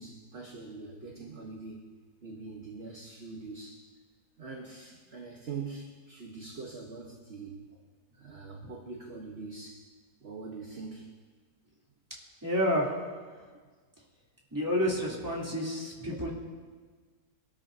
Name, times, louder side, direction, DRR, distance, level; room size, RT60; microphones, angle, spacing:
voice 1, 0.0-1.9 2.2-3.8 4.4-7.6 8.2-9.8 10.2-11.1, right 4 dB, 40° right, 0 dB, 1.4 m, -43 dB
voice 2, 12.4-12.9 14.5-16.3, equal, 10° right, -6 dB, 3.4 m, -29 dB
24.0 x 13.0 x 2.8 m, 1.5 s
omnidirectional pair, 1.8 m